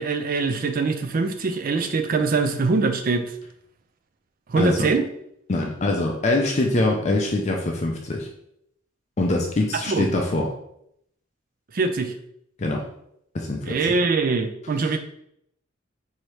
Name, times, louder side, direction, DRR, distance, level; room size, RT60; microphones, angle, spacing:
voice 1, 0.0-3.3 4.5-5.1 9.7-10.1 11.7-12.1 13.6-15.0, right 4 dB, 45° right, 7 dB, 0.4 m, -23 dB
voice 2, 4.6-4.9 5.5-8.3 9.2-10.5 12.6-12.8 13.3-13.8, left 2 dB, 35° left, 1 dB, 0.5 m, -23 dB
4.7 x 2.7 x 3.1 m, 0.73 s
head